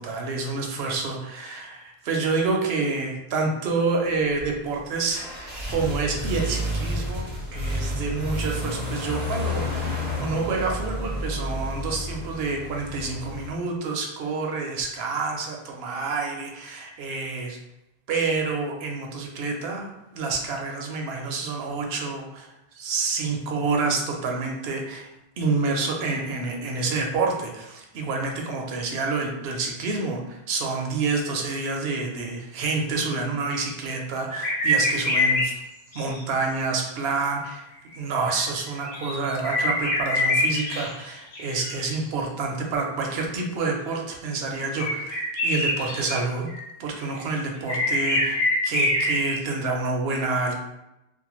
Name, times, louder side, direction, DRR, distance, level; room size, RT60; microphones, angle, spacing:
voice 1, 0.0-7.2 7.5-17.6 18.1-25.1 25.4-35.5 35.9-37.7 37.9-46.5 46.8-50.6, right 3 dB, 70° right, 1 dB, 0.8 m, -28 dB
sound 1, 4.3-13.5, left 1 dB, 40° left, 1.2 m, -30 dB
sound 2, 34.3-35.5 35.9-36.2 38.3-41.0 41.3-42.0 44.8-46.2 46.5-47.3 47.7-49.4, left 1 dB, 60° left, 1.0 m, -25 dB
2.6 x 2.1 x 2.9 m, 0.91 s
omnidirectional pair, 1.1 m